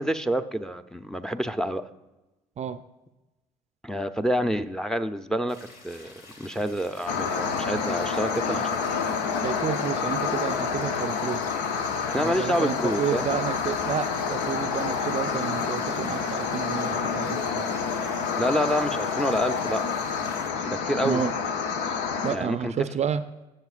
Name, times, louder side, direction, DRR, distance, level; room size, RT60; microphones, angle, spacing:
voice 1, 0.0-1.8 3.8-5.6 5.8-8.8 12.1-13.3 18.4-19.8 20.7-21.2 22.3-22.7, equal, 5° left, 9 dB, 0.6 m, -27 dB
sound 1, 5.5-20.5, left 2 dB, 60° left, 2.1 m, -49 dB
sound 2, 7.1-22.4, left 5 dB, 80° left, 0.7 m, -28 dB
voice 2, 9.4-11.4 12.2-17.7 21.0-21.3 22.2-23.2, right 8 dB, 40° right, 12 dB, 0.5 m, -30 dB
16.0 x 6.5 x 2.5 m, 1.0 s
hypercardioid pair, 65°, 17 cm